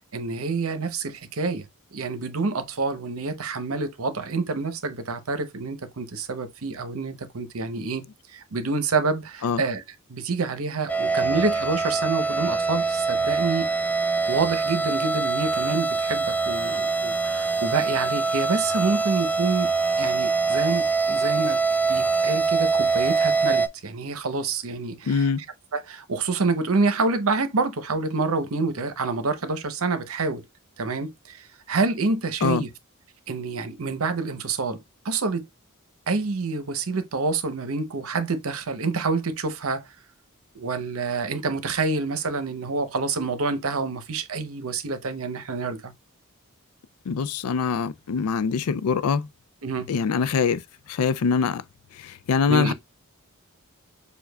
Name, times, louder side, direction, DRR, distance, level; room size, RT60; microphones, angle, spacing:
voice 1, 0.1-1.6 1.9-8.0 8.3-9.8 10.1-13.7 14.3-19.7 20.0-21.6 21.9-25.3 25.7-30.4 30.8-32.7 33.3-34.8 35.0-35.5 36.1-39.8 40.5-45.9 49.6-49.9 52.5-52.7, right 4 dB, 70° right, 0.8 m, -27 dB
sound 1, 10.9-23.7, right 4 dB, 5° left, 0.3 m, -24 dB
voice 2, 25.1-25.4 32.4-32.7 47.1-49.3 49.9-50.6 50.9-51.6 51.9-52.7, left 6 dB, 90° left, 0.4 m, -23 dB
6.9 x 2.3 x 2.2 m
head